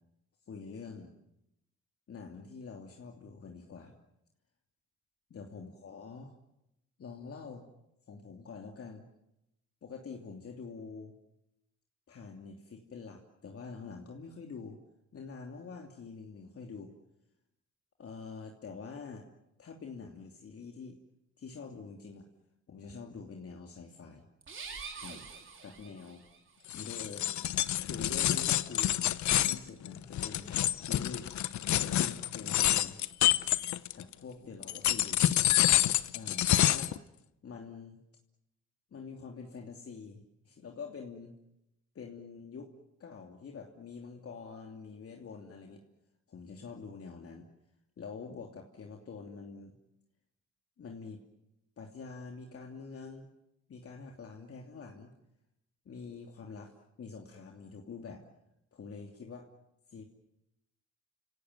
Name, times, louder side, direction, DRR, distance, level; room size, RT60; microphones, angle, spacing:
voice 1, 0.5-1.2 2.1-3.9 5.3-6.3 7.0-7.7 8.1-9.1 9.8-11.1 12.1-14.8 15.1-16.9 18.0-19.3 19.6-21.0 21.4-22.3 22.7-24.3 25.0-25.2 25.6-26.2 26.7-27.3 27.7-29.0 29.3-30.5 30.8-31.3 31.7-33.0 33.9-35.2 36.0-36.9 37.4-38.0 38.9-41.3 41.9-42.7 43.0-45.8 46.3-47.5 48.0-49.8 50.8-51.2 51.8-53.3 53.7-55.1 55.8-58.2 58.7-59.5 59.9-60.0, left 5 dB, 50° left, 2 dB, 2.8 m, -46 dB
sound 1, 24.4-26.4, right 5 dB, 40° right, 4.0 m, -45 dB
sound 2, 26.7-34.1 34.6-37.0, left 13 dB, 70° left, 1.0 m, -28 dB
29.5 x 17.5 x 9.5 m, 0.86 s
cardioid pair, 90°, 30 cm